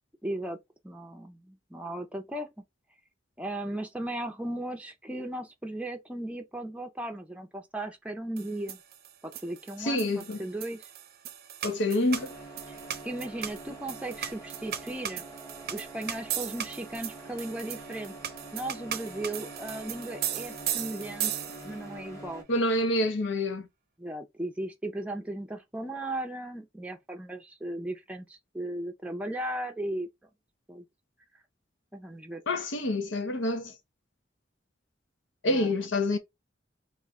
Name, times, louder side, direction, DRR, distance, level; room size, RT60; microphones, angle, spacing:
voice 1, 0.2-0.6 0.8-2.6 3.4-8.8 9.2-10.9 12.7-12.8 13.0-15.2 15.7-18.2 18.5-21.3 21.6-22.4 24.0-30.1 30.7-30.8 31.9-32.4 35.4-35.7, right 1 dB, 5° right, 0.5 m, -36 dB
sound 1, 8.4-21.9, right 10 dB, 55° right, 0.5 m, -37 dB
voice 2, 9.8-10.4 11.6-12.3 22.5-23.7 32.5-33.7 35.4-36.2, left 1 dB, 80° left, 0.7 m, -27 dB
sound 2, 12.1-22.4, right 2 dB, 15° left, 1.4 m, -45 dB
3.0 x 2.4 x 3.5 m
head